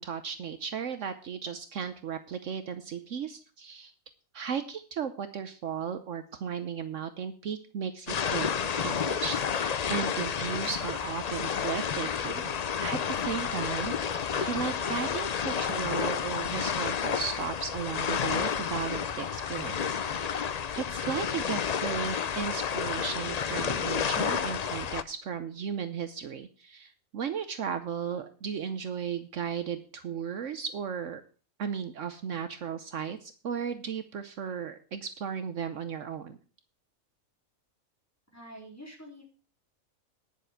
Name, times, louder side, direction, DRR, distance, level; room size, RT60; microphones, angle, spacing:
voice 1, 0.0-3.9 4.3-8.5 8.8-12.5 12.8-31.2 31.6-36.4, right 7 dB, 65° right, 10 dB, 1.1 m, -35 dB
sound 1, 8.1-25.0, left 7 dB, 60° left, 0.4 m, -31 dB
voice 2, 38.3-39.2, equal, 10° left, -1 dB, 3.5 m, -46 dB
10.5 x 6.8 x 6.5 m, 0.39 s
omnidirectional pair, 1.4 m